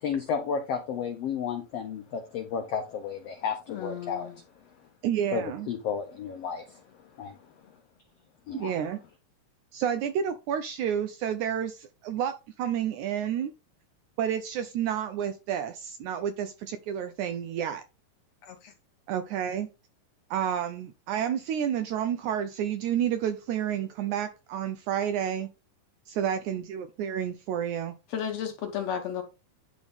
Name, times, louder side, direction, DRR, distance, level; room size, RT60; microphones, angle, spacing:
voice 1, 0.0-4.3 5.3-6.8 7.2-7.4 8.5-8.7, left 6 dB, 85° left, 1.4 m, -32 dB
voice 2, 3.7-4.4 18.4-18.7 28.1-29.2, left 8 dB, 65° left, 1.8 m, -34 dB
voice 3, 5.0-5.7 8.5-9.0 9.7-13.5 14.2-17.8 19.1-19.7 20.3-25.5 26.1-27.9, right 9 dB, 80° right, 1.7 m, -30 dB
10.5 x 4.2 x 3.5 m
omnidirectional pair, 4.0 m